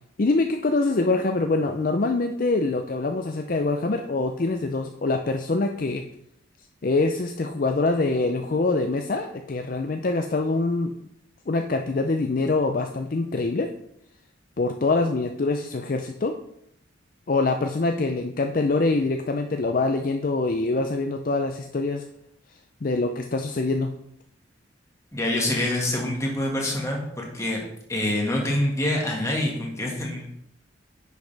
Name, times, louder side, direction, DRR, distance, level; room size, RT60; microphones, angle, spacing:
voice 1, 0.2-6.0 6.8-10.9 11.5-13.7 14.6-16.3 17.3-22.0 22.8-23.9, left 3 dB, 45° left, 5 dB, 0.5 m, -24 dB
voice 2, 25.1-27.6 27.9-30.3, left 1 dB, 15° left, -1 dB, 1.8 m, -26 dB
9.7 x 6.7 x 3.4 m, 0.75 s
head